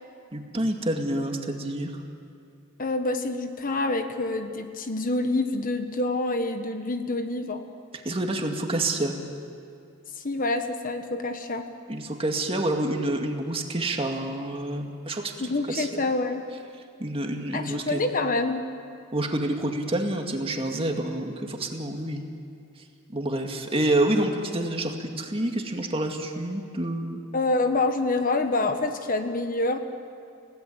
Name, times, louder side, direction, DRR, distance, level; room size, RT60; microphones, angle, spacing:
voice 1, 0.3-1.9 8.0-9.1 11.9-16.1 17.0-18.0 19.1-22.2 23.1-27.2, right 1 dB, 25° right, 3 dB, 2.1 m, -28 dB
voice 2, 2.8-7.6 10.2-11.7 15.4-16.4 17.5-18.6 27.3-29.8, left 2 dB, 40° left, 7 dB, 1.3 m, -27 dB
29.5 x 17.5 x 8.6 m, 2.4 s
head